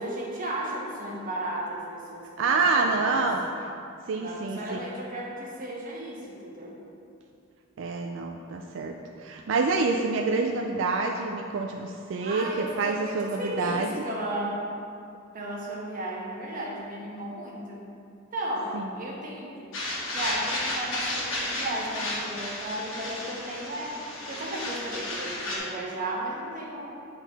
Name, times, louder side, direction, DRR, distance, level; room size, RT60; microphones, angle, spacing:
voice 1, 0.0-2.5 2.7-3.3 4.2-6.7 12.2-14.6 15.3-17.9 18.3-19.7 20.1-24.0 24.3-27.1, right 1 dB, 45° right, -3 dB, 1.2 m, -35 dB
voice 2, 2.4-3.4 4.1-4.8 7.8-8.9 9.2-14.0 18.7-18.9, right 3 dB, 65° right, 2 dB, 0.4 m, -27 dB
sound 1, 19.7-25.6, left 1 dB, 85° left, 1.4 m, -33 dB
8.1 x 3.9 x 4.1 m, 2.6 s
head